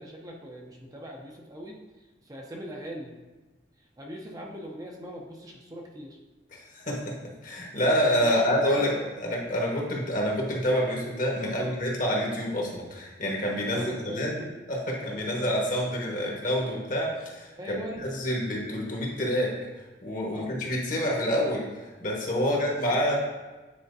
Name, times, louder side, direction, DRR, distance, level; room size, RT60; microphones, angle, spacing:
voice 1, 0.0-1.8 2.3-3.1 4.0-6.2 8.2-9.2 11.4-11.8 13.5-14.7 15.1-15.4 17.6-18.0 20.3-20.5 22.4-23.0, equal, 20° right, 0 dB, 0.6 m, -40 dB
voice 2, 6.5-8.9 9.2-14.4 14.7-19.5 20.0-23.2, equal, 50° left, -2 dB, 1.4 m, -27 dB
8.9 x 4.3 x 2.7 m, 1.2 s
head